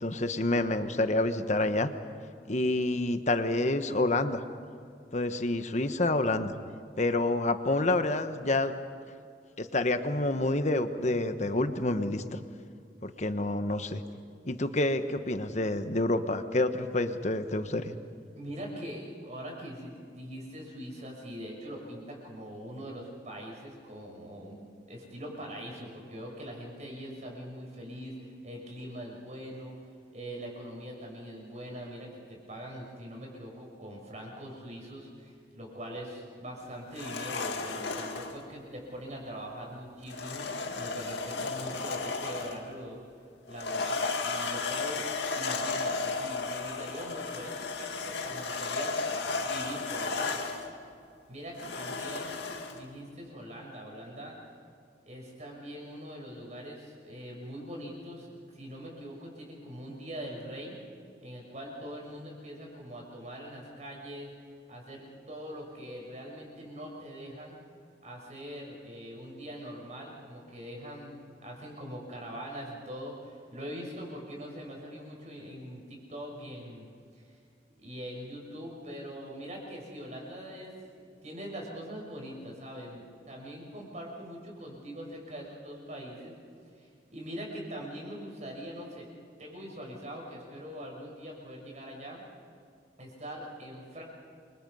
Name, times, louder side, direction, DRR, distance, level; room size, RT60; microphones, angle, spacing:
voice 1, 0.0-1.9 2.5-4.4 5.1-6.5 7.0-8.7 9.6-12.4 13.0-14.0 14.5-17.9, left 2 dB, 40° left, 9 dB, 1.2 m, -28 dB
voice 2, 18.3-24.6 24.9-29.7 30.1-43.0 43.5-45.0 45.3-49.1 49.4-50.3 51.3-52.3 52.7-54.3 55.0-58.3 58.5-60.8 61.2-64.3 64.7-67.6 68.0-76.9 77.1-77.4 77.7-86.4 86.7-89.1 89.4-92.2 93.0-94.0, equal, 40° right, -1 dB, 6.6 m, -42 dB
sound 1, 36.9-38.4 40.1-42.7 43.5-50.7 51.6-52.8, left 4 dB, 80° left, 2.2 m, -34 dB
28.5 x 25.0 x 5.5 m, 2.4 s
head